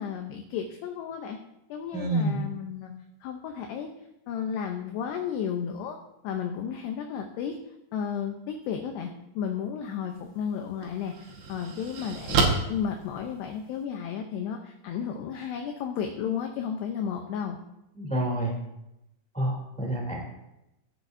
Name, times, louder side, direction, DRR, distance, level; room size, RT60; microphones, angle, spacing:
voice 1, 0.0-1.4 1.7-2.9 3.2-3.9 4.3-6.0 6.2-7.6 7.9-17.6, left 7 dB, 80° left, 4 dB, 2.5 m, -33 dB
voice 2, 1.9-2.4 17.9-18.5 19.3-20.2, right 1 dB, 5° left, -3 dB, 1.2 m, -28 dB
sound 1, 10.1-10.2 10.8-13.8, right 4 dB, 70° right, 3.5 m, -29 dB
16.5 x 9.3 x 2.7 m, 0.90 s
omnidirectional pair, 5.6 m